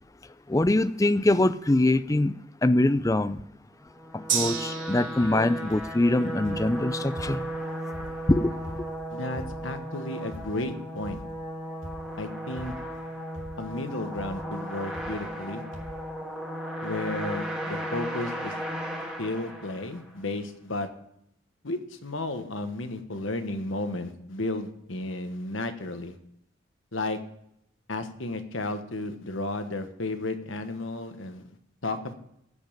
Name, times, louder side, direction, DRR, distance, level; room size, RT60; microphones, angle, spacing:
voice 1, 0.5-3.4 4.1-7.5 8.3-8.5, left 1 dB, 15° left, 0.4 m, -23 dB
sound 1, 3.9-20.2, equal, 5° right, 1.7 m, -36 dB
Gong, 4.3-12.1 12.4-12.5, right 7 dB, 40° right, 2.6 m, -38 dB
sound 2, 5.7-6.1 6.5-7.6 7.9-9.9 10.3-10.7 11.0-11.5 11.8-12.2 12.6-13.1 13.3-13.8 14.2-14.5 14.9-15.5 15.7-16.1 16.8-16.9 17.1-17.2, equal, 85° right, 2.2 m, -43 dB
voice 2, 9.1-11.2 12.2-12.7 13.6-15.6 16.8-18.5 19.2-20.9 21.6-26.1 26.9-27.2 27.9-31.4 31.8-32.1, left 2 dB, 80° left, 1.3 m, -33 dB
15.5 x 5.4 x 8.8 m
head